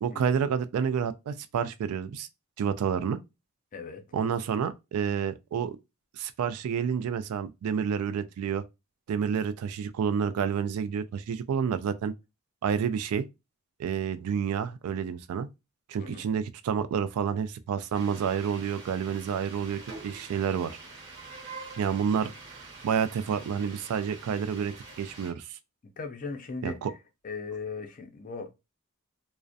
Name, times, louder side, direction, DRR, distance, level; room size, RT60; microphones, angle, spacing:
voice 1, 0.0-2.3 2.6-3.2 4.1-5.8 6.1-8.6 9.1-12.1 12.6-13.3 13.8-15.5 15.9-20.8 21.8-22.3 22.8-25.6 26.6-26.9, right 7 dB, 80° right, 0.3 m, -29 dB
voice 2, 3.7-4.0 16.0-16.3 25.8-26.8 27.2-28.5, left 4 dB, 35° left, 0.4 m, -38 dB
sound 1, 17.9-25.3, right 3 dB, 55° right, 0.8 m, -45 dB
2.4 x 2.1 x 2.5 m
head